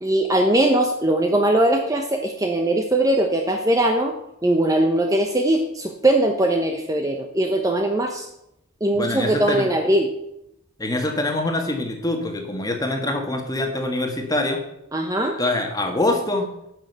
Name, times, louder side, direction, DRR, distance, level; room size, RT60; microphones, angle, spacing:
voice 1, 0.0-4.1 4.4-8.3 8.8-10.1 14.9-15.4, right 1 dB, 15° right, 3 dB, 0.8 m, -20 dB
voice 2, 8.9-9.7 10.8-14.6 15.4-16.5, left 2 dB, 15° left, 4 dB, 1.6 m, -24 dB
11.0 x 6.4 x 8.0 m, 0.81 s
head